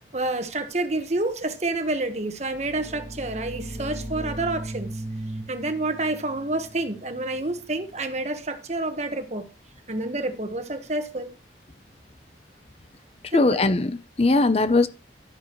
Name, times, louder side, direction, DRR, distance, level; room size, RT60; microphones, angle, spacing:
voice 1, 0.1-4.9 5.5-9.5 9.9-11.3 13.3-13.7, right 2 dB, 40° right, 1.4 m, -28 dB
sound 1, 2.4-8.0, right 1 dB, 15° right, 4.1 m, -37 dB
voice 2, 13.3-14.9, left 2 dB, 35° left, 0.7 m, -20 dB
11.5 x 10.5 x 3.1 m
head